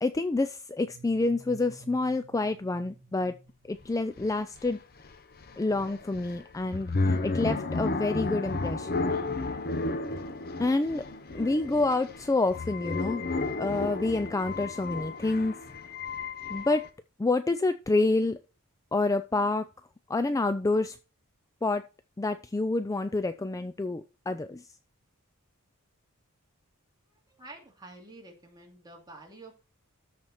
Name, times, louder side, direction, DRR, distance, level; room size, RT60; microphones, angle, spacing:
voice 1, 0.0-3.3 3.7-4.8 5.6-9.1 10.6-11.1 11.3-13.2 13.6-15.5 16.5-16.9 17.2-18.4 18.9-19.7 20.1-21.0 21.6-21.8 22.2-24.7, left 2 dB, 15° left, 11 dB, 0.3 m, -28 dB
sound 1, 0.8-4.5, right 3 dB, 45° right, 4.0 m, -52 dB
sound 2, 3.8-3.9 4.2-16.9, left 3 dB, 45° left, 1.0 m, -33 dB
voice 2, 27.3-29.6, right 2 dB, 20° right, 0 dB, 2.5 m, -49 dB
13.0 x 4.4 x 4.2 m, 0.33 s
head